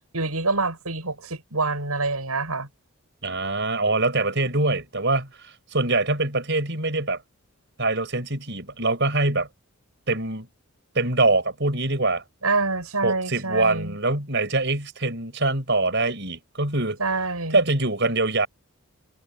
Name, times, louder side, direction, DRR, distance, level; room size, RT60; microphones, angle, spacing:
voice 1, 0.1-2.7 12.4-14.0 17.0-17.6, right 3 dB, 85° right, 7.8 m, -26 dB
voice 2, 3.2-7.2 7.8-9.5 10.1-10.5 10.9-12.2 13.0-17.0 17.5-18.5, right 2 dB, 50° right, 6.4 m, -24 dB
head